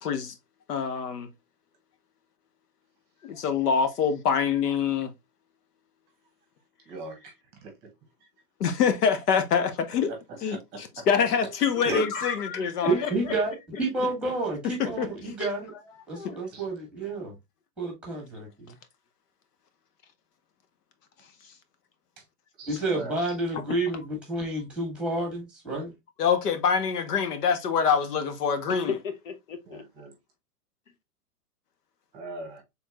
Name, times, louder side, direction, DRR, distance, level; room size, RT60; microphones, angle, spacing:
voice 1, 0.0-0.3 0.7-1.3 3.2-5.1 8.6-10.1 10.4-12.9 14.8-15.1 16.2-16.3 26.2-28.9, left 6 dB, 85° left, 1.1 m, -25 dB
voice 2, 6.9-7.3 7.6-7.7 10.3-11.0 11.8-12.1 16.5-16.6 22.6-23.2 29.6-30.1 32.1-32.6, right 3 dB, 20° right, 1.0 m, -37 dB
voice 3, 11.9-13.4 15.4-15.5 15.9-16.4 21.2-21.6 23.5-23.8 28.7-29.9, left 6 dB, 60° left, 0.8 m, -35 dB
voice 4, 12.9-15.7 16.1-17.3 17.8-18.7 22.7-25.9, right 2 dB, ahead, 1.4 m, -30 dB
4.5 x 3.5 x 2.3 m
supercardioid pair, 160°, 45 cm